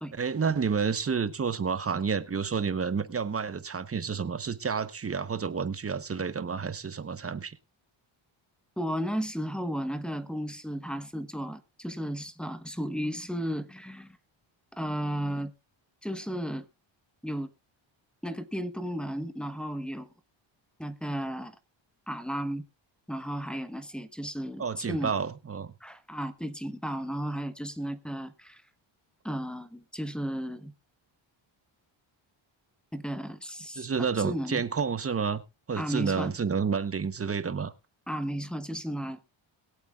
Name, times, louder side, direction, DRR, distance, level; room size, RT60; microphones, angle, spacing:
voice 1, 0.1-7.6 24.6-25.8 33.8-35.4 35.7-37.7, right 6 dB, 30° right, 0.9 m, -30 dB
voice 2, 8.8-14.2 14.7-15.5 16.0-16.6 17.2-17.5 18.2-20.1 20.8-21.6 22.1-22.6 23.1-25.1 25.8-28.6 29.2-30.7 32.9-34.6 35.8-36.3 38.1-39.3, equal, ahead, 1.1 m, -34 dB
22.0 x 8.1 x 2.4 m
cardioid pair, 105°, 48 cm